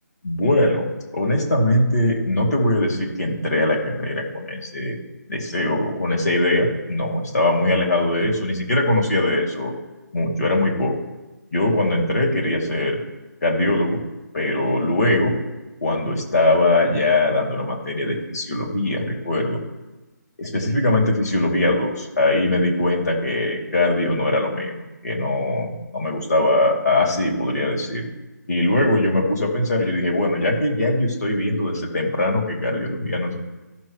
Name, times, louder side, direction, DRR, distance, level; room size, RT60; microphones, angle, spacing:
voice 1, 0.2-5.0 5.3-9.7 10.1-11.0 11.5-13.0 13.4-14.0 14.3-15.3 15.8-19.6 20.4-24.8 25.0-28.1 28.5-33.4, left 1 dB, 60° left, -2 dB, 2.7 m, -21 dB
15.0 x 6.6 x 3.1 m, 1.1 s
hypercardioid pair, 175°, 10 cm